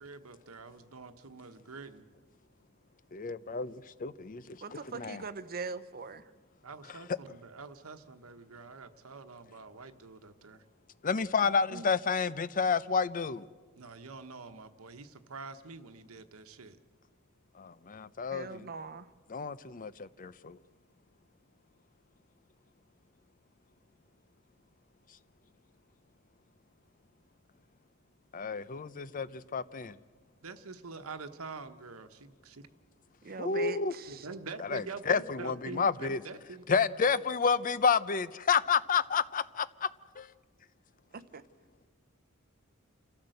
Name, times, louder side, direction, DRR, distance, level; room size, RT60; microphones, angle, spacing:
voice 1, 0.0-2.1 6.6-10.6 13.7-16.8 30.4-32.7 34.1-36.7, right 4 dB, 90° right, 1.1 m, -46 dB
voice 2, 3.1-5.2 6.9-7.0 11.0-13.4 17.6-18.7 19.3-20.6 28.3-30.0 33.4-33.9 34.6-36.2 36.7-39.9 40.2-40.3, left 5 dB, 40° left, 0.6 m, -30 dB
voice 3, 4.6-6.2 11.7-11.9 18.3-19.1 33.2-34.3 41.1-41.4, right 4 dB, 45° right, 0.8 m, -41 dB
28.0 x 13.5 x 7.8 m
head